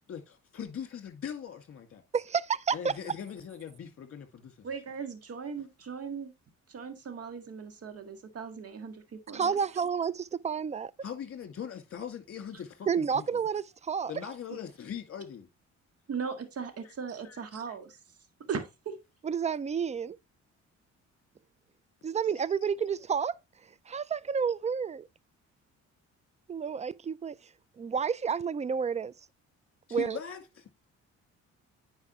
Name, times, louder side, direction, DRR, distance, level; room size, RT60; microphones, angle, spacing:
voice 1, 0.1-2.0 2.7-4.7 11.0-13.4 14.1-15.5 16.8-16.9 17.2-17.4 17.7-17.8 22.2-22.6 29.9-30.7, left 8 dB, 50° left, 2.2 m, -41 dB
voice 2, 2.1-3.1 9.3-10.9 12.9-14.1 19.2-20.2 22.0-23.3 23.9-25.1 26.5-27.4 27.8-29.1 29.9-30.2, right 6 dB, 25° right, 0.4 m, -30 dB
voice 3, 4.6-6.3 6.7-9.6 14.5-14.6 16.1-18.0 18.5-18.9, right 6 dB, 50° right, 1.8 m, -38 dB
9.6 x 4.9 x 3.1 m
cardioid pair, 90°, 30 cm